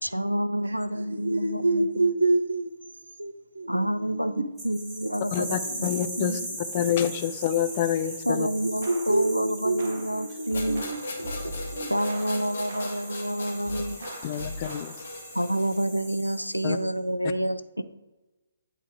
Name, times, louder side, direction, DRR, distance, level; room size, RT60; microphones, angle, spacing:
voice 1, 0.0-2.1 3.7-5.9 6.2-6.5 8.3-10.8 11.9-14.1 15.3-17.8, right 1 dB, 90° left, 0.4 m, -28 dB
voice 2, 0.6-2.7 3.2-4.5 5.0-5.8 8.3-12.0, right 2 dB, 70° right, 0.8 m, -29 dB
sound 1, 4.6-16.9, right 1 dB, 10° right, 1.8 m, -40 dB
voice 3, 5.3-6.4 6.7-8.5 14.2-14.9 16.6-16.8, left 10 dB, 35° left, 0.5 m, -27 dB
sound 2, 8.8-9.3 9.8-13.2 13.6-15.2, equal, 40° right, 1.3 m, -41 dB
sound 3, 10.5-15.9, left 2 dB, 55° left, 1.1 m, -39 dB
8.6 x 3.4 x 4.8 m
figure-of-eight pair, 130°, 0 cm